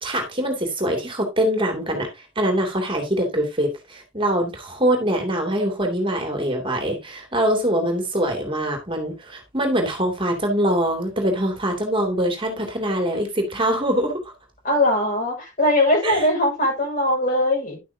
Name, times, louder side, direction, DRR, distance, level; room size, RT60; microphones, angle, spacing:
voice 1, 0.0-14.2 16.0-16.3, right 1 dB, 25° right, 2.7 m, -23 dB
voice 2, 14.6-17.8, left 1 dB, 45° left, 6.5 m, -20 dB
11.5 x 8.5 x 2.8 m
head